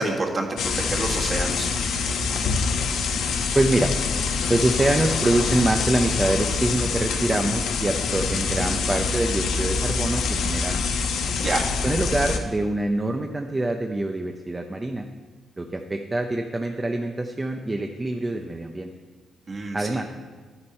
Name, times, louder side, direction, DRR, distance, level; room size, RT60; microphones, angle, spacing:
voice 1, 0.0-1.7 11.4-11.6 19.5-20.0, right 2 dB, 35° right, 0 dB, 1.7 m, -28 dB
sound 1, 0.6-12.4, left 4 dB, 85° left, 1.0 m, -25 dB
voice 2, 3.5-3.9 4.5-10.8 11.8-15.1 15.6-18.9 19.7-20.0, right 2 dB, 15° right, 4 dB, 0.6 m, -25 dB
11.5 x 9.8 x 4.4 m, 1.5 s
cardioid pair, 130°, 0 cm